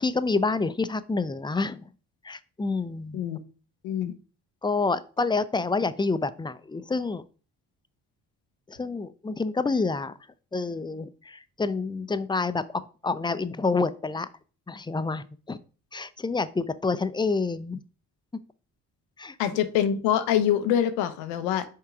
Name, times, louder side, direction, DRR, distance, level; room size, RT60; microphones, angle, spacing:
voice 1, 0.0-1.9 2.2-3.2 4.6-7.2 8.7-10.1 10.5-14.3 14.7-15.6 15.9-17.8 19.2-19.4, left 3 dB, 10° left, 14 dB, 0.5 m, -28 dB
voice 2, 19.4-21.7, left 10 dB, 90° left, 11 dB, 0.8 m, -25 dB
5.8 x 3.7 x 4.8 m, 0.38 s
hypercardioid pair, 50°, 42 cm